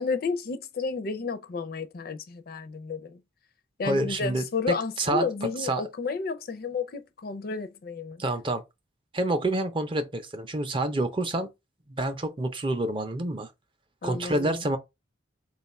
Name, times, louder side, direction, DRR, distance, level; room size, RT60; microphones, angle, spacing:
voice 1, 0.0-3.2 3.8-8.2 14.0-14.6, left 4 dB, 50° left, 0.4 m, -32 dB
voice 2, 3.8-5.3 5.6-5.8 8.2-8.6 9.1-11.5 11.9-13.5 14.0-14.8, right 2 dB, 25° right, 0.5 m, -28 dB
3.6 x 2.3 x 4.1 m
head